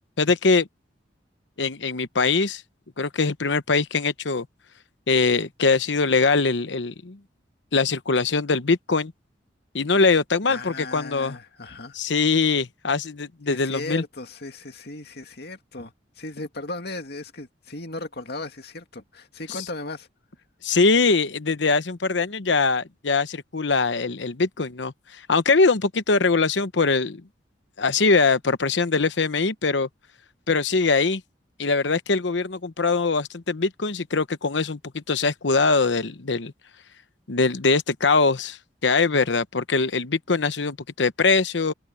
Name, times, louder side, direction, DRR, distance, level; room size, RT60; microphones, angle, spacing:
voice 1, 0.2-0.7 1.6-2.6 3.0-4.5 5.1-7.2 7.7-9.1 9.7-11.4 11.9-14.0 20.6-27.2 27.8-29.9 30.5-31.2 31.6-36.5 37.3-41.7, left 4 dB, 75° left, 1.0 m, -22 dB
voice 2, 10.5-11.9 13.5-20.1, left 2 dB, 60° left, 2.3 m, -36 dB
head